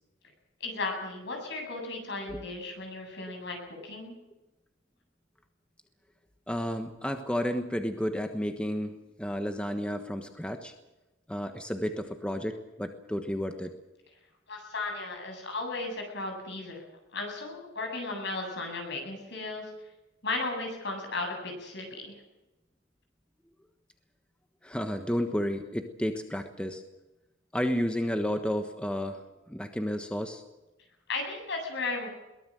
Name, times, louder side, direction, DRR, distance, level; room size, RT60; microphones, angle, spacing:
voice 1, 0.6-3.6 3.8-4.1 14.5-16.8 17.1-19.7 20.2-22.2 31.1-32.1, left 3 dB, 60° left, 3 dB, 7.8 m, -35 dB
voice 2, 6.5-10.7 11.3-13.8 24.6-26.8 27.5-30.4, equal, 5° left, 6 dB, 1.3 m, -32 dB
22.5 x 19.0 x 7.6 m, 1.0 s
head